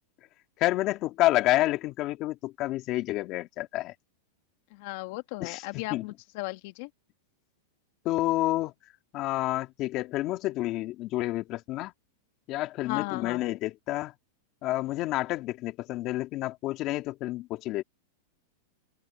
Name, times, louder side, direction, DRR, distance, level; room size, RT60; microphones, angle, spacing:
voice 1, 0.6-3.9 5.4-6.1 8.0-8.7 9.1-11.9 12.5-14.1 14.6-17.8, left 17 dB, 40° left, 3.0 m, -29 dB
voice 2, 4.7-6.9 12.8-13.4, left 23 dB, 55° left, 1.9 m, -36 dB
open air
supercardioid pair, 140°, 0 cm